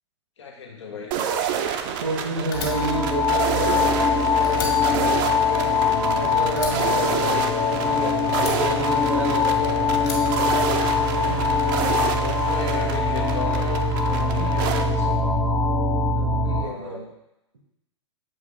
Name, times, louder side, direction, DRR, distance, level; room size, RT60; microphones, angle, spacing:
voice 1, 0.4-1.1 11.8-15.3 16.5-17.0, left 4 dB, 70° left, 1 dB, 1.1 m, -37 dB
sound 1, 1.1-14.8, right 8 dB, 45° right, 0.6 m, -29 dB
voice 2, 2.0-5.9 6.1-7.3 7.7-10.0 11.2-11.6 16.2-17.1, right 2 dB, 70° right, 1 dB, 1.2 m, -31 dB
Fire, 2.5-4.1 4.4-6.2 6.6-7.9 8.3-9.5 10.0-11.2, left 5 dB, 45° left, 1.7 m, -36 dB
sound 2, 2.5-16.6, left 4 dB, 10° left, 0.7 m, -22 dB
7.1 x 4.8 x 3.3 m, 0.89 s
figure-of-eight pair, 105°, 15 cm